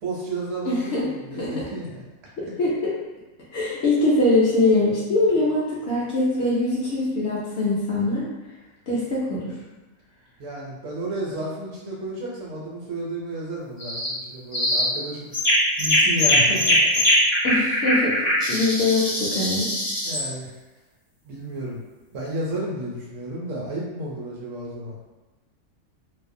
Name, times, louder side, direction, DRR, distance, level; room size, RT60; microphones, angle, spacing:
voice 1, 0.0-2.0 2.5-2.6 10.4-16.8 20.0-20.5 21.2-21.8 22.1-24.9, right 1 dB, 70° right, -3 dB, 0.9 m, -32 dB
voice 2, 0.7-1.0 1.3-1.7 2.4-2.9 3.5-8.3 8.9-9.5 17.4-18.2 18.5-19.7, left 2 dB, 65° left, -6 dB, 0.7 m, -22 dB
sound 1, 13.8-14.1 14.5-14.9 15.3-20.3, left 1 dB, 30° left, 0.5 m, -21 dB
2.5 x 2.0 x 2.5 m, 1.2 s
omnidirectional pair, 1.5 m